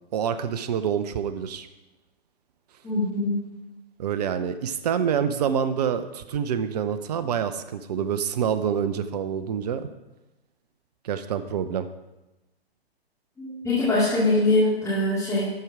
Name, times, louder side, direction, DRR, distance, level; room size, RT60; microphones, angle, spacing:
voice 1, 0.1-1.7 4.0-9.9 11.0-11.9, right 8 dB, 40° right, 11 dB, 0.6 m, -27 dB
voice 2, 2.8-3.4 13.4-15.5, left 2 dB, 10° left, -9 dB, 2.3 m, -23 dB
13.0 x 4.5 x 4.9 m, 1.0 s
figure-of-eight pair, 125°, 32 cm